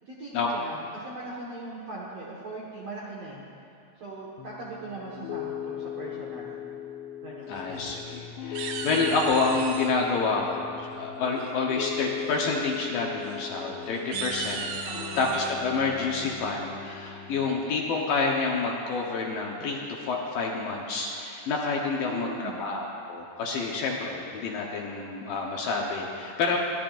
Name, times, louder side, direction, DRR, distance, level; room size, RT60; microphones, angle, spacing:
voice 1, 0.0-3.4 4.0-6.6 7.2-7.5 14.9-15.3 22.0-22.6, right 2 dB, 55° right, -6 dB, 1.8 m, -40 dB
Piano, 4.4-17.5, left 9 dB, 85° left, 3.0 m, -38 dB
voice 2, 7.5-26.6, left 4 dB, 70° left, -2 dB, 2.4 m, -28 dB
sound 1, 7.6-8.2 8.5-9.9 11.4-11.8 12.2-12.4 12.7-12.8 13.2-13.4 14.0-15.5, right 6 dB, 75° right, 2.4 m, -36 dB
28.5 x 12.5 x 2.6 m, 2.6 s
omnidirectional pair, 5.0 m